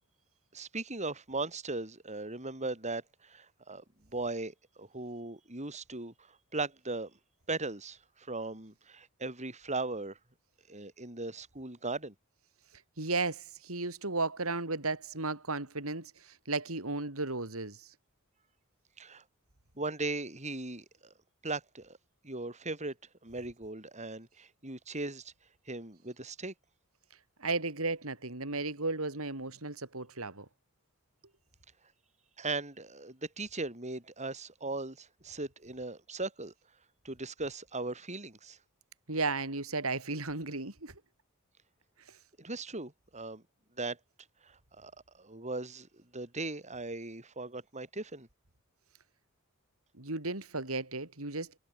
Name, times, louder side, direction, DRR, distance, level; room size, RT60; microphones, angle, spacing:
voice 1, 0.5-3.8 4.1-6.1 6.5-7.1 7.5-10.2 10.7-12.1 19.0-19.2 19.8-21.1 21.4-22.0 22.2-22.9 23.2-25.3 25.7-26.5 32.4-36.5 37.0-38.6 42.4-43.4 43.8-44.0 44.8-44.9 45.2-48.3, right 3 dB, 35° right, 6.3 m, -38 dB
voice 2, 13.0-17.9 27.4-30.5 39.1-40.9 50.0-51.6, right 3 dB, 75° right, 4.0 m, -34 dB
head